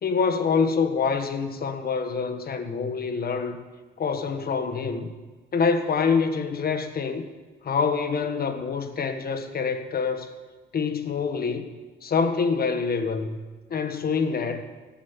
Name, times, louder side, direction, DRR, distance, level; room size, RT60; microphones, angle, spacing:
voice 1, 0.0-3.6 4.0-5.1 5.5-7.3 7.6-10.3 10.7-11.7 12.0-13.4 13.7-14.6, left 5 dB, 50° left, 1.5 m, -26 dB
15.0 x 7.3 x 9.6 m
cardioid pair, 90°, 20 cm